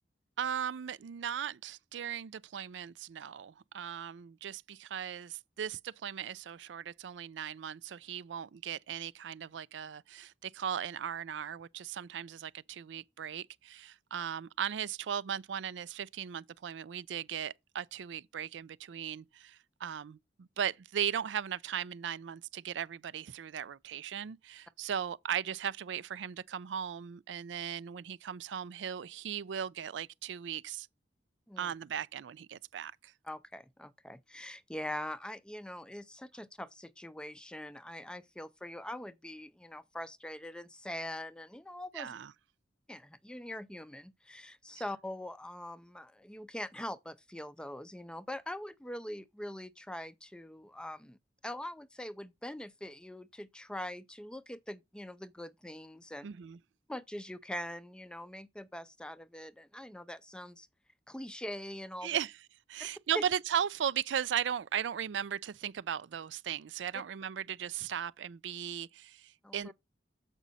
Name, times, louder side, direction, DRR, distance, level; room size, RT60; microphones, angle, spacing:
voice 1, 0.4-30.9 31.6-33.1 41.9-42.3 56.2-56.6 62.0-62.3 62.7-69.7, right 8 dB, 80° right, 0.4 m, -37 dB
voice 2, 33.2-42.1 42.9-51.2 51.4-56.3 56.9-60.7 61.1-62.2 63.1-63.2 69.4-69.7, left 1 dB, 5° left, 0.4 m, -43 dB
7.2 x 5.2 x 4.1 m
head